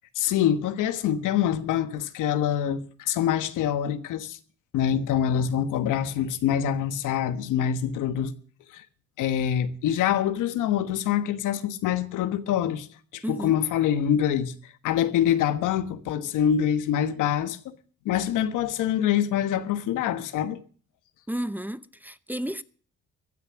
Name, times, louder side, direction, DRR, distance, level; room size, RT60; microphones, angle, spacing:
voice 1, 0.1-4.4 4.7-8.3 8.7-8.8 9.2-12.9 13.1-17.7 18.0-20.6, left 9 dB, 90° left, 1.3 m, -25 dB
voice 2, 13.2-13.5 21.3-22.6, right 1 dB, 5° right, 0.7 m, -32 dB
15.0 x 9.6 x 7.0 m
cardioid pair, 90°, 30 cm